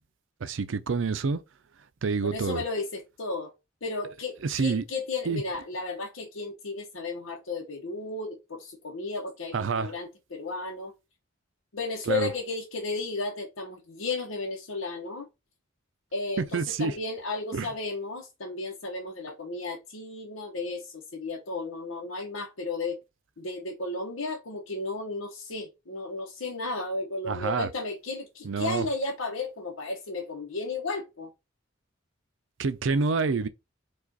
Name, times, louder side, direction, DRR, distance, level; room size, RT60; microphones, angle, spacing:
voice 1, 0.4-1.4 2.0-2.6 4.4-4.8 5.3-5.4 9.5-9.9 12.1-12.3 16.4-17.0 17.5-17.7 27.3-27.7 28.4-28.9 32.6-33.5, right 4 dB, 70° right, 0.5 m, -27 dB
voice 2, 2.2-3.5 3.8-10.9 11.7-15.3 16.1-20.8 21.1-23.0 23.4-31.3, left 3 dB, 90° left, 0.9 m, -34 dB
4.8 x 2.4 x 4.0 m
head